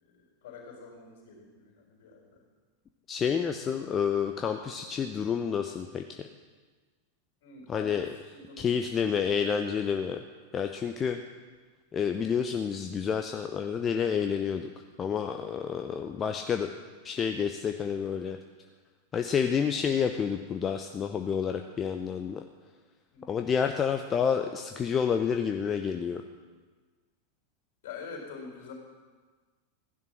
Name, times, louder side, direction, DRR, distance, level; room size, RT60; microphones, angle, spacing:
voice 1, 0.0-2.4 7.4-8.7 15.8-16.2 23.1-23.4 27.8-28.7, left 5 dB, 55° left, 1 dB, 4.3 m, -46 dB
voice 2, 3.1-6.3 7.7-8.1 8.6-10.2 10.5-11.2 11.9-14.7 15.0-16.7 17.0-18.4 19.1-22.4 23.3-26.2, left 7 dB, 25° left, 6 dB, 0.7 m, -29 dB
15.0 x 11.0 x 6.1 m, 1.4 s
figure-of-eight pair, 90°, 0 cm